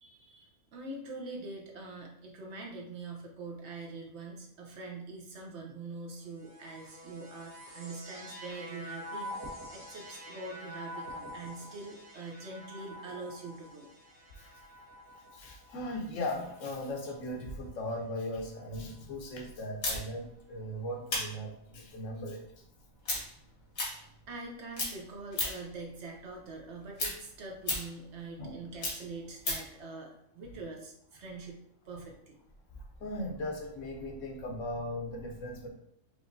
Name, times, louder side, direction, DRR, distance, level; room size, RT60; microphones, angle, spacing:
voice 1, 0.0-13.9 24.3-31.6 31.9-32.4, right 3 dB, 60° right, 1 dB, 1.0 m, -44 dB
sound 1, 6.2-17.7 18.5-19.2, equal, 90° right, 1.5 m, -47 dB
voice 2, 15.3-22.4 28.4-28.6 33.0-35.7, left 1 dB, 65° left, 1 dB, 1.2 m, -38 dB
sound 2, 19.8-24.5 24.7-25.8 26.1-29.8, left 2 dB, 80° left, 1.8 m, -36 dB
4.9 x 3.1 x 2.6 m, 0.72 s
omnidirectional pair, 1.4 m